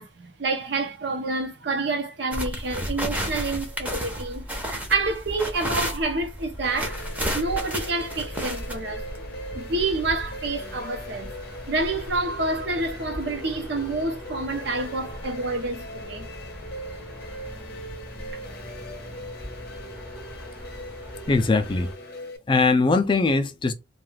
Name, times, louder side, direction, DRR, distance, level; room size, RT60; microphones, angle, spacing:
voice 1, 0.0-7.0 7.3-9.1 9.5-11.3 11.7-16.3, right 3 dB, 65° right, 0.7 m, -28 dB
sound 1, 2.3-21.9, equal, 10° right, 0.6 m, -35 dB
sound 2, 6.6-22.4, equal, 55° left, 0.7 m, -40 dB
voice 2, 21.3-21.9 22.5-23.7, left 3 dB, 25° left, 0.3 m, -21 dB
2.3 x 2.3 x 3.1 m
head